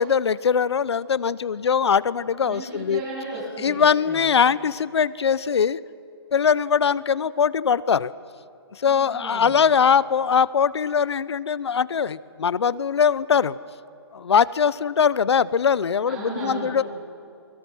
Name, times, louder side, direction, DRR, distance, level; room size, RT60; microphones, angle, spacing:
voice 1, 0.0-3.0 3.6-5.8 6.3-8.1 8.7-13.6 14.1-16.8, left 7 dB, 75° left, 19 dB, 0.8 m, -21 dB
voice 2, 2.4-4.3 8.9-9.6 16.0-16.8, right 2 dB, 25° right, -9 dB, 7.9 m, -35 dB
28.0 x 23.5 x 6.3 m, 2.5 s
hypercardioid pair, 150°, 14 cm